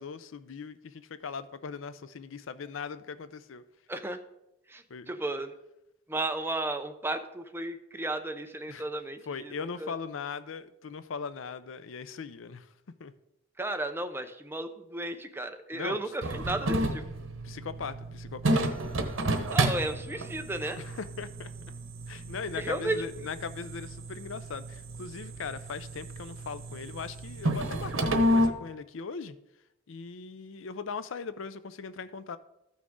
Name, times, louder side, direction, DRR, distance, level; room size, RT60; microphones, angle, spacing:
voice 1, 0.0-3.6 4.9-5.1 8.7-8.8 9.3-12.7 13.0-13.1 15.7-16.0 17.4-18.6 20.8-21.5 22.1-29.4 29.9-32.4, left 5 dB, 75° left, 13 dB, 0.5 m, -39 dB
voice 2, 3.9-4.2 4.7-5.5 6.1-9.9 13.6-17.0 19.5-20.8 22.5-23.0, right 2 dB, 10° right, 8 dB, 0.6 m, -34 dB
sound 1, 16.2-28.5, right 1 dB, 85° right, 1.0 m, -31 dB
14.0 x 6.1 x 3.7 m, 0.87 s
head